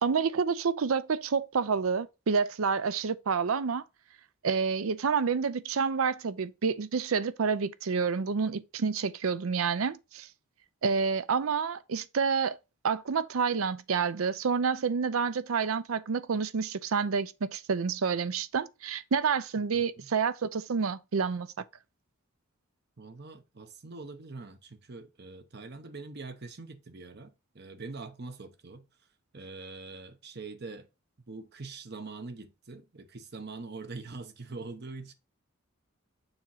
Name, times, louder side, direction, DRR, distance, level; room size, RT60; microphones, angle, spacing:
voice 1, 0.0-3.8 4.4-10.3 10.8-12.6 12.8-21.5, right 5 dB, 80° right, 0.5 m, -28 dB
voice 2, 19.7-20.1 23.0-28.9 29.3-30.9 31.3-35.1, right 3 dB, 50° right, 0.9 m, -43 dB
7.0 x 2.9 x 5.5 m
head